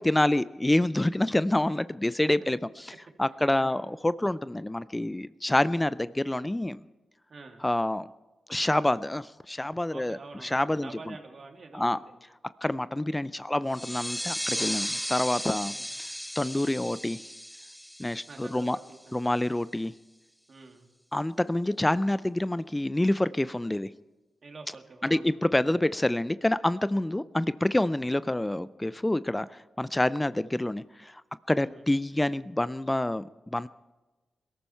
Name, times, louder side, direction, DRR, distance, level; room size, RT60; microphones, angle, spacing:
voice 1, 0.0-2.9 3.2-6.8 7.6-8.1 8.5-11.1 11.7-12.0 12.6-16.1 16.4-17.2 18.0-18.8 19.1-19.9 21.1-23.9 25.0-31.2 31.5-33.7, left 1 dB, 15° left, 16 dB, 0.5 m, -27 dB
voice 2, 7.3-7.6 9.9-10.6 10.8-12.1 15.7-15.9 18.3-19.2 20.5-20.9 24.4-25.3 31.6-31.8, right 3 dB, 55° right, 3 dB, 2.6 m, -47 dB
sound 1, 13.7-19.0, equal, ahead, 0.9 m, -35 dB
21.5 x 13.5 x 4.5 m, 1.1 s
supercardioid pair, 45°, 0 cm